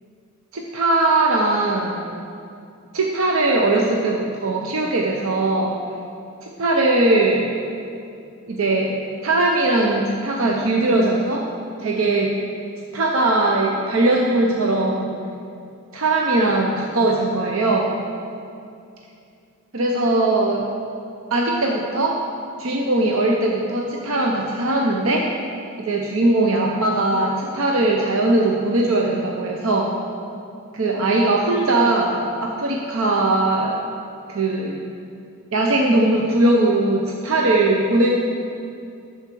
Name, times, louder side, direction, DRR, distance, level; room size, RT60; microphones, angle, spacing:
voice 1, 0.5-2.2 2.9-5.7 6.4-7.5 8.5-9.0 9.2-11.5 11.8-12.3 12.9-15.2 15.9-17.9 19.7-20.6 21.3-22.2 22.6-25.3 25.8-29.9 30.7-33.8 34.3-34.8 35.5-38.1, right 2 dB, 75° right, 0 dB, 0.7 m, -20 dB
10.0 x 7.2 x 4.6 m, 2.5 s
head